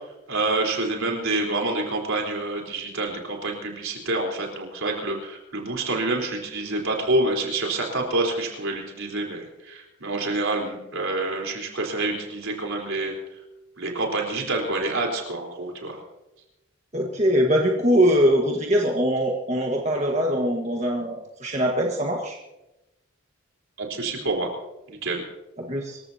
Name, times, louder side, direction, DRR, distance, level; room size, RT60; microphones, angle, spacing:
voice 1, 0.3-13.1 13.8-16.0 23.8-24.5 24.9-25.2, right 2 dB, 70° right, 1 dB, 4.1 m, -27 dB
voice 2, 16.9-22.4 25.6-26.0, equal, 30° right, 0 dB, 1.6 m, -22 dB
26.0 x 15.0 x 2.9 m, 0.95 s
head